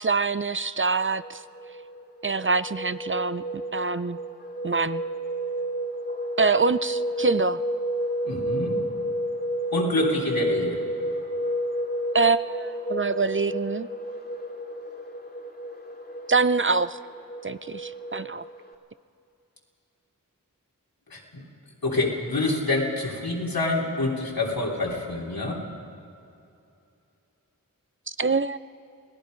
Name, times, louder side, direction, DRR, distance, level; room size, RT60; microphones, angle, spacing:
voice 1, 0.0-1.4 2.2-3.4 3.7-4.2 4.6-5.0 6.4-7.6 12.1-13.9 16.3-17.0 17.4-18.4 28.2-28.6, right 4 dB, 35° right, 14 dB, 0.5 m, -24 dB
sound 1, 1.1-18.7, right 1 dB, 30° left, 2.2 m, -31 dB
voice 2, 8.2-8.8 9.7-10.8 21.1-21.4 21.8-25.6, left 2 dB, 80° left, -3 dB, 3.2 m, -27 dB
28.0 x 18.0 x 5.2 m, 2.7 s
wide cardioid pair, 45°, 35 cm